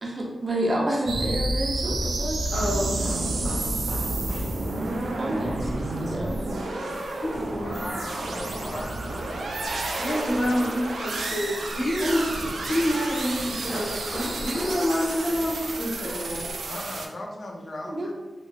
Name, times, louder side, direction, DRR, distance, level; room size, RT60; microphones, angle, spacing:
voice 1, 0.0-2.4 5.2-6.4 17.8-18.1, right 1 dB, 40° right, -2 dB, 0.6 m, -29 dB
sound 1, 1.1-17.1, right 2 dB, 85° right, 0.3 m, -30 dB
sound 2, 1.8-16.5, equal, ahead, 1.1 m, -41 dB
voice 2, 2.5-3.2 6.5-6.6 7.2-8.1 10.0-12.3 12.5-16.5, equal, 80° left, -10 dB, 0.9 m, -28 dB
voice 3, 7.6-9.2 16.7-18.1, left 1 dB, 45° left, 1 dB, 0.4 m, -38 dB
3.0 x 2.5 x 2.3 m, 1.2 s
wide cardioid pair, 105°, 0 cm